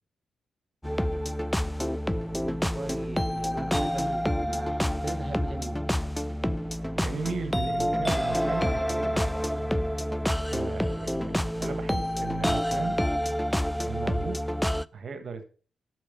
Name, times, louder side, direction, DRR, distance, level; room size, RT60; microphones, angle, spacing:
sound 1, 0.8-14.8, equal, 5° left, 0.4 m, -28 dB
voice 1, 2.5-5.9, right 2 dB, 30° right, 7 dB, 1.2 m, -40 dB
voice 2, 6.9-9.8 10.5-13.0 13.9-14.5 14.9-15.4, right 5 dB, 60° right, 9 dB, 1.4 m, -37 dB
8.2 x 6.5 x 5.2 m, 0.38 s
hypercardioid pair, 40°, 0 cm